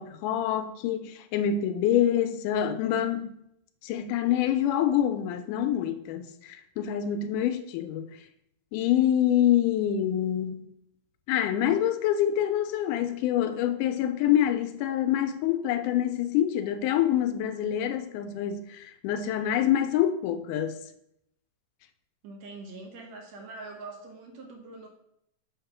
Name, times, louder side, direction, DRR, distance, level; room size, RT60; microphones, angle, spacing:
voice 1, 0.0-3.3 3.8-8.2 8.7-10.7 11.3-20.8, left 10 dB, 85° left, 2.1 m, -26 dB
voice 2, 22.2-24.9, right 3 dB, 65° right, 1.9 m, -43 dB
7.1 x 3.6 x 5.9 m
omnidirectional pair, 3.6 m